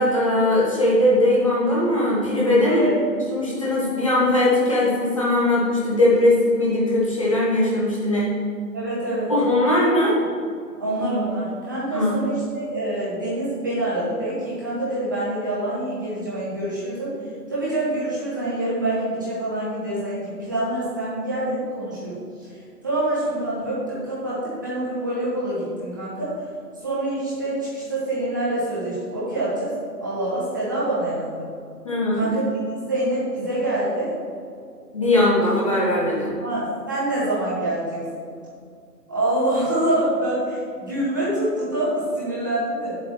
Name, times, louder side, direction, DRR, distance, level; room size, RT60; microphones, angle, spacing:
voice 1, 0.0-2.9 3.3-8.3 9.3-10.2 11.9-12.2 31.8-32.3 34.9-36.4, left 1 dB, 20° left, -6 dB, 1.0 m, -20 dB
voice 2, 8.7-9.3 10.8-17.1 17.5-26.3 26.8-29.7 30.0-31.5 32.1-32.4 32.8-34.1 36.4-38.0 39.1-43.0, right 1 dB, 10° right, -9 dB, 1.0 m, -26 dB
8.3 x 7.3 x 4.4 m, 2.2 s
figure-of-eight pair, 155°, 49 cm